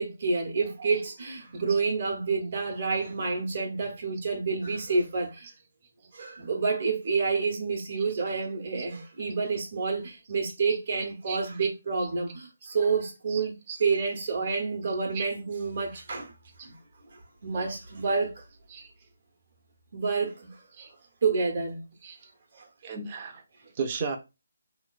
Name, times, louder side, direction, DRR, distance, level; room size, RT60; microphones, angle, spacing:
voice 1, 0.0-5.5 6.1-16.3 16.6-16.8 17.1-18.4 19.9-20.6 21.2-21.8 22.5-22.7, right 4 dB, 50° right, 1.0 m, -29 dB
voice 2, 10.7-11.7 12.0-12.1 13.3-13.8 14.9-15.3 16.6-16.7 18.7-18.8 20.8-20.9 22.0-22.2 22.8-23.4 23.8-24.2, right 5 dB, 30° right, 0.7 m, -36 dB
3.7 x 3.0 x 2.4 m
figure-of-eight pair, 150°, 0 cm